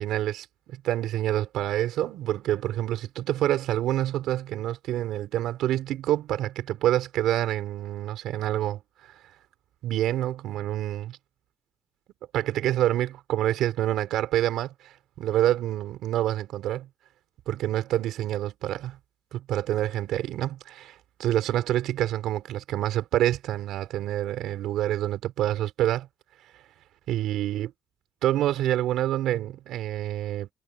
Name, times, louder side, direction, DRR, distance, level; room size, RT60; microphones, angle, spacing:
voice 1, 0.0-9.1 9.8-11.2 12.3-16.9 17.5-19.0 19.3-26.1 27.1-27.7 28.2-30.5, right 13 dB, 85° right, 4.3 m, -27 dB
cardioid pair, 90°, 0 cm